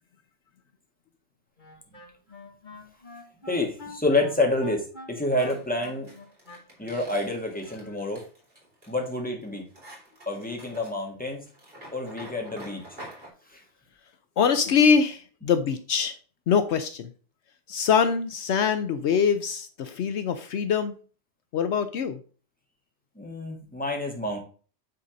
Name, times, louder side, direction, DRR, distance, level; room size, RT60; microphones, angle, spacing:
Wind instrument woodwind instrument, 1.6-7.2, left 3 dB, 45° left, 1.8 m, -45 dB
voice 1, 3.5-6.1 6.8-8.2 8.9-9.6 10.3-11.4 11.9-12.8 13.5-13.6 23.2-24.4, left 2 dB, 5° left, 0 dB, 2.0 m, -28 dB
sound 1, 5.4-13.3, right 1 dB, 55° right, 3.5 m, -48 dB
voice 2, 14.4-16.2 16.5-17.1 17.7-20.9 21.5-22.2, left 6 dB, 75° left, 9 dB, 1.0 m, -23 dB
9.4 x 4.2 x 5.1 m, 0.40 s
omnidirectional pair, 1.2 m